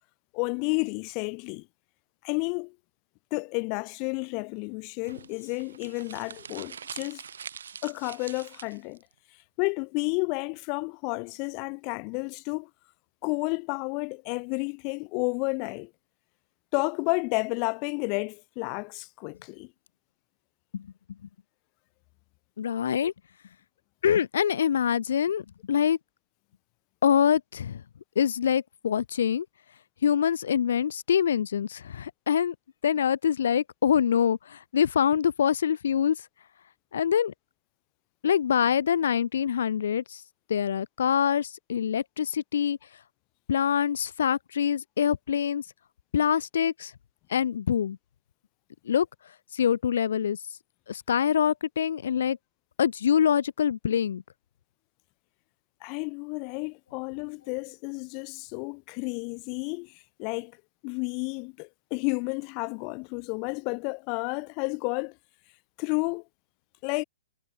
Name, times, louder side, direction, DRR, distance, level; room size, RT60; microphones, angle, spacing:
voice 1, 0.3-1.7 2.2-2.7 3.3-7.2 7.8-9.0 9.6-12.7 13.2-15.9 16.7-19.7 55.8-59.9 60.2-60.5 60.8-65.1 65.8-66.2 66.8-67.0, left 36 dB, 30° left, 1.4 m, -31 dB
sound 1, 5.0-9.0, right 7 dB, 80° right, 3.2 m, -43 dB
voice 2, 22.6-23.1 24.0-26.0 27.0-27.8 28.1-29.5 30.0-32.5 32.8-36.3 36.9-37.3 38.2-40.2 40.5-42.8 43.5-45.6 46.1-46.9 47.3-48.0 48.8-49.1 49.5-50.4 50.9-52.4 52.8-54.2, left 8 dB, 70° left, 1.2 m, -25 dB
hypercardioid pair, 150°, 0 cm